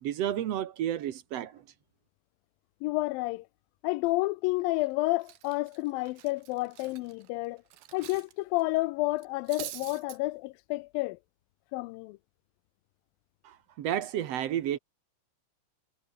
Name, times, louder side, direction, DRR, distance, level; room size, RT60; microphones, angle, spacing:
voice 1, 0.0-1.7 13.4-14.8, right 11 dB, 65° right, 1.8 m, -31 dB
voice 2, 2.8-3.5 3.8-7.6 7.9-11.2 11.7-12.2, left 21 dB, 85° left, 2.4 m, -30 dB
Cutlery silverware, 4.6-4.9 5.2-8.3 8.6-8.8 9.2-10.2, right 14 dB, 90° right, 3.1 m, -45 dB
omnidirectional pair, 4.0 m